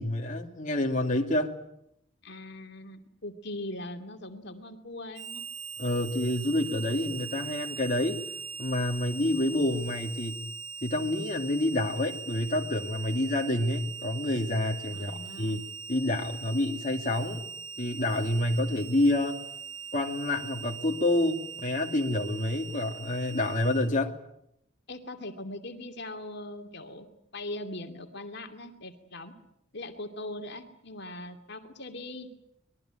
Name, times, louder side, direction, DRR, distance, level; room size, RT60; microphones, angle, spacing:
voice 1, 0.0-1.6 5.8-8.2 8.6-10.4 10.8-15.6 15.9-17.4 17.8-19.4 19.9-24.2, left 1 dB, 40° left, 2 dB, 2.5 m, -28 dB
voice 2, 2.2-5.4 14.9-15.6 24.9-27.1 27.3-29.3 29.7-32.3, left 1 dB, 55° left, 6 dB, 2.7 m, -40 dB
Harmonica, 5.1-23.9, right 6 dB, 75° right, 1.8 m, -41 dB
25.0 x 21.5 x 9.1 m, 0.78 s
head